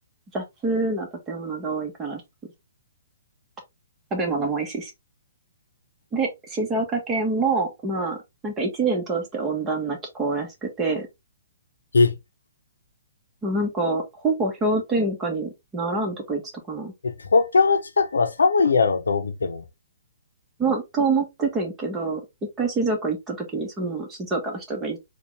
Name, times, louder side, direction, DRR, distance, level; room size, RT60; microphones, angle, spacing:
voice 1, 0.3-2.2 4.1-4.9 6.1-8.2 8.4-11.1 13.4-16.4 16.7-16.9 20.6-22.2 22.6-25.0, right 3 dB, 15° right, 1.4 m, -26 dB
voice 2, 17.0-19.6, left 4 dB, 85° left, 0.8 m, -20 dB
4.2 x 2.5 x 3.3 m
hypercardioid pair, 140°, 0 cm